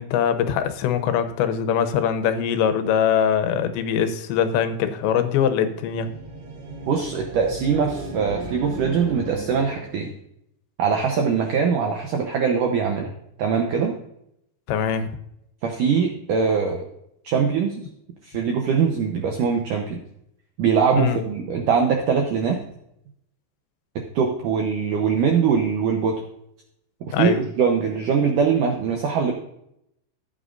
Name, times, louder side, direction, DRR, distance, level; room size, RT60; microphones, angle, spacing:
voice 1, 0.0-6.1 14.7-15.1 21.0-21.2 27.1-27.4, left 8 dB, 90° left, 9 dB, 3.2 m, -22 dB
sound 1, 5.5-10.1, right 2 dB, 60° right, 4.1 m, -36 dB
voice 2, 6.9-10.1 10.8-13.1 13.4-13.9 15.6-16.8 17.2-17.8 18.2-20.0 20.6-22.6 24.0-26.2 27.1-29.3, right 6 dB, 80° right, 3 dB, 1.8 m, -22 dB
13.5 x 9.0 x 2.6 m, 0.78 s
omnidirectional pair, 5.0 m